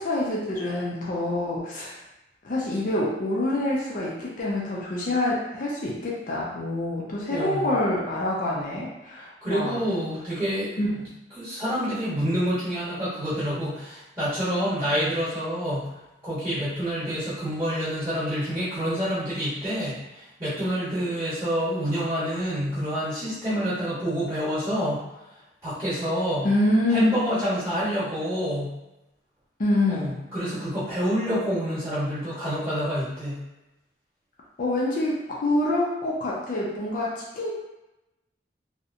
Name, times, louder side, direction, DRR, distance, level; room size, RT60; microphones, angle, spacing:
voice 1, 0.0-2.0 2.4-9.8 10.8-11.1 26.4-27.1 29.6-30.1 34.6-37.5, left 1 dB, 50° left, -4 dB, 0.4 m, -26 dB
voice 2, 7.3-7.7 9.4-10.8 11.4-15.9 16.2-25.0 25.6-26.5 26.9-28.7 29.9-33.4, equal, 20° right, -13 dB, 1.0 m, -27 dB
2.7 x 2.1 x 2.5 m, 0.95 s
head